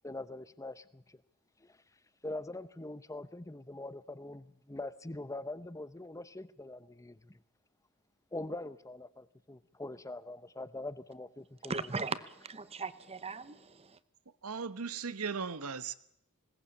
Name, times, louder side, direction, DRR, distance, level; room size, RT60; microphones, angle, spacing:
voice 1, 0.0-1.2 1.6-1.8 2.2-7.4 8.3-11.9, left 2 dB, 15° left, 0.8 m, -43 dB
voice 2, 11.7-12.2 12.5-14.0, right 4 dB, 30° right, 1.0 m, -38 dB
voice 3, 14.4-15.9, right 5 dB, 75° right, 1.0 m, -37 dB
21.0 x 18.0 x 8.5 m
head